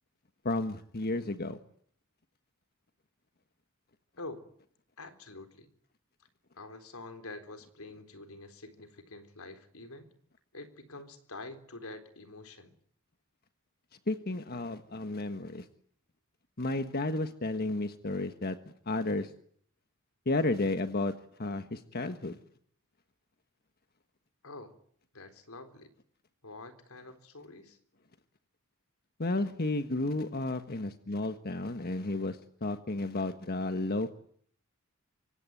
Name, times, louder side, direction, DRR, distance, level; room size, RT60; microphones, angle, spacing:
voice 1, 0.4-1.6 14.1-15.7 16.6-18.6 18.8-19.3 20.2-21.1 21.4-22.4 29.2-34.2, left 2 dB, 45° left, 9 dB, 1.5 m, -32 dB
voice 2, 5.0-5.7 6.6-10.1 10.5-12.8 24.4-24.7 25.1-25.9 26.4-27.8, left 2 dB, 80° left, 9 dB, 3.9 m, -46 dB
25.5 x 24.5 x 9.2 m, 0.63 s
head